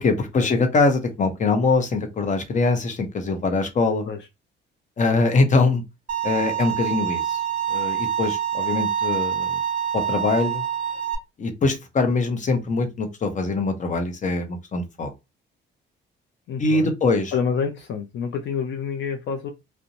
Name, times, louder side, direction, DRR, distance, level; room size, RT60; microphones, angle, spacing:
voice 1, 0.0-4.1 5.0-5.8 6.2-7.4 7.7-9.5 9.9-10.6 11.4-15.1 16.6-17.3, left 3 dB, 40° left, 0.7 m, -22 dB
Bowed string instrument, 6.1-11.1, right 9 dB, 45° right, 0.8 m, -26 dB
voice 2, 16.5-16.9 17.3-19.5, left 6 dB, 65° left, 0.5 m, -28 dB
2.5 x 2.1 x 2.8 m
cardioid pair, 90°, 20 cm